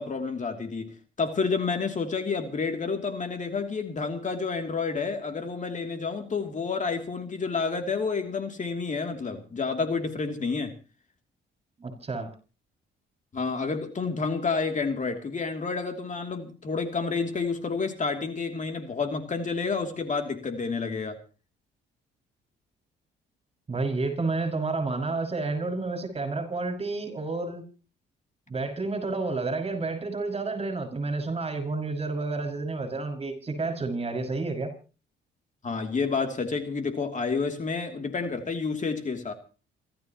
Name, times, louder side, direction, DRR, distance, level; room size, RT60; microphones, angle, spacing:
voice 1, 0.0-10.7 13.3-21.2 35.6-39.3, left 4 dB, 40° left, 2.9 m, -29 dB
voice 2, 11.8-12.3 23.7-27.6 28.5-34.7, right 3 dB, 30° right, 6.0 m, -30 dB
27.5 x 13.5 x 3.0 m
cardioid pair, 90°, 20 cm